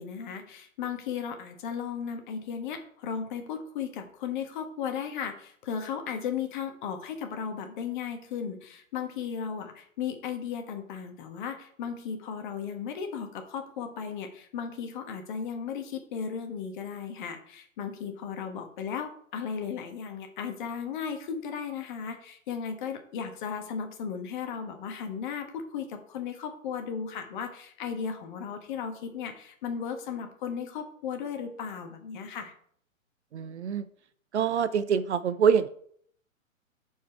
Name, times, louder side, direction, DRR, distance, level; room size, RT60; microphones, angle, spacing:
voice 1, 0.0-32.5, left 7 dB, 35° left, 5 dB, 1.5 m, -35 dB
voice 2, 33.3-33.9 34.3-35.7, right 7 dB, 55° right, 13 dB, 0.7 m, -25 dB
14.0 x 4.7 x 4.5 m, 0.63 s
figure-of-eight pair, 120°, 40 cm